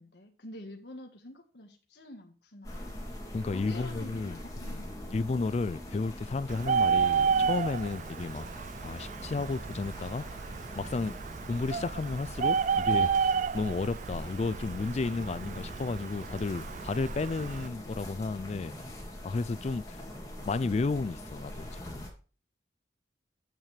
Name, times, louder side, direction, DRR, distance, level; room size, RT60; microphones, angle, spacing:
voice 1, 0.0-2.9 3.5-5.4, left 1 dB, 70° left, 1.5 m, -47 dB
sound 1, 2.6-22.1, left 1 dB, 20° left, 2.6 m, -43 dB
voice 2, 3.3-4.4 4.7-4.8 5.1-10.2 10.8-11.2 11.5-18.7 19.2-20.0 20.4-22.1, left 3 dB, 40° left, 0.3 m, -33 dB
Bird, 6.5-17.7, right 6 dB, 45° right, 0.3 m, -31 dB
9.1 x 8.9 x 3.3 m
head